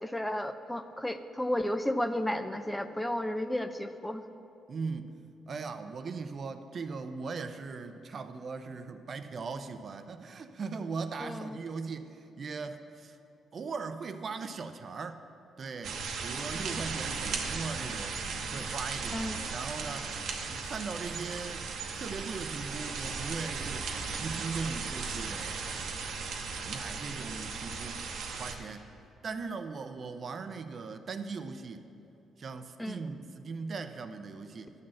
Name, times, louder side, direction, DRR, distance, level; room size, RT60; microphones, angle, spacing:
voice 1, 0.0-4.2 11.2-11.6 19.1-19.5 32.8-33.1, left 1 dB, 10° left, 9 dB, 0.4 m, -33 dB
voice 2, 4.7-5.1 5.5-13.2 13.5-15.2 15.6-18.2 18.5-20.2 20.5-21.7 21.9-23.9 24.2-25.5 26.6-28.0 28.4-28.8 29.2-31.9 32.4-34.7, right 4 dB, 50° right, 9 dB, 0.5 m, -39 dB
sound 1, 15.8-28.6, right 5 dB, 70° right, 0.9 m, -36 dB
11.5 x 4.0 x 7.5 m, 2.7 s
cardioid pair, 90°, 0 cm